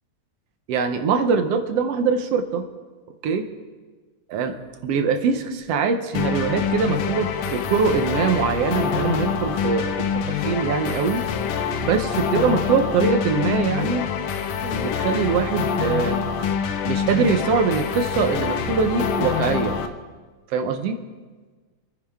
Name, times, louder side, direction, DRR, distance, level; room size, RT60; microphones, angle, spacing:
voice 1, 0.7-2.7 3.2-3.5 4.3-4.6 4.8-11.2 11.8-14.0 14.6-16.2 16.9-19.8 20.5-21.0, right 5 dB, 70° right, 7 dB, 1.6 m, -23 dB
sound 1, 6.1-19.9, left 7 dB, 85° left, 2.4 m, -25 dB
27.0 x 9.9 x 3.5 m, 1.4 s
omnidirectional pair, 3.5 m